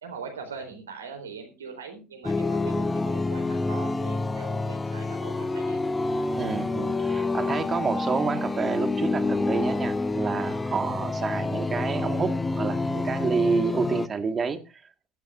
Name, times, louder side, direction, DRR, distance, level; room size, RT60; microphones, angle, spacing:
voice 1, 0.0-5.9, right 5 dB, 85° right, 3.9 m, -41 dB
sound 1, 2.2-14.1, left 3 dB, 15° left, 0.8 m, -28 dB
voice 2, 6.4-14.6, right 5 dB, 30° right, 1.8 m, -29 dB
16.5 x 12.5 x 2.6 m
hypercardioid pair, 70°, 0 cm